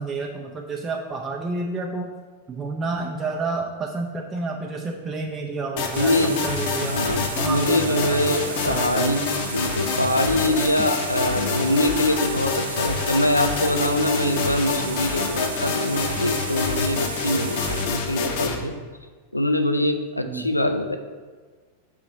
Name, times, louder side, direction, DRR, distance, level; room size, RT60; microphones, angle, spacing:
voice 1, 0.0-2.1 2.5-7.0 7.3-8.2 8.6-9.2 20.3-20.5, right 3 dB, 20° right, 0 dB, 0.5 m, -30 dB
sound 1, 5.8-18.6, left 5 dB, 50° left, 0.8 m, -27 dB
sound 2, 5.9-17.9, right 4 dB, 75° right, 0.6 m, -35 dB
voice 2, 6.0-6.4 6.8-9.2 9.5-18.8 19.3-21.0, left 1 dB, 85° left, 7 dB, 0.4 m, -23 dB
5.7 x 3.9 x 4.9 m, 1.5 s
figure-of-eight pair, 90°, 0 cm